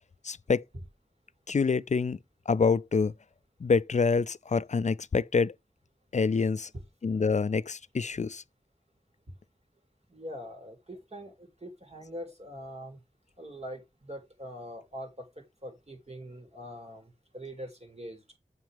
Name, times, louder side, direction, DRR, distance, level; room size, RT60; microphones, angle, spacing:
voice 1, 0.2-0.6 1.5-2.2 2.5-3.1 3.6-5.5 6.1-6.7 7.0-8.4, left 5 dB, 55° left, 0.4 m, -26 dB
voice 2, 10.1-13.0 13.4-18.4, equal, 45° right, 3.0 m, -43 dB
7.8 x 5.6 x 3.5 m
wide cardioid pair, 45°, 15 cm